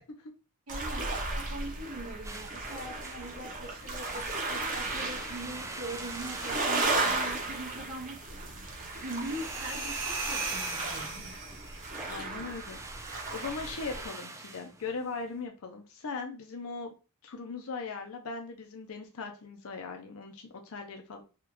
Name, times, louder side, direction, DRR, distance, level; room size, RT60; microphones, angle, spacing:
sound 1, 0.7-14.1, right 2 dB, 40° right, 0.8 m, -35 dB
voice 1, 0.7-11.3, right 1 dB, 75° right, -2 dB, 1.0 m, -42 dB
sound 2, 2.2-15.3, right 2 dB, 15° right, 0.4 m, -44 dB
sound 3, 9.2-11.9, right 4 dB, 55° right, 1.3 m, -37 dB
voice 2, 12.0-12.8 13.3-16.9 17.2-21.2, left 4 dB, 70° left, 4 dB, 0.6 m, -39 dB
3.6 x 2.3 x 3.0 m, 0.33 s
head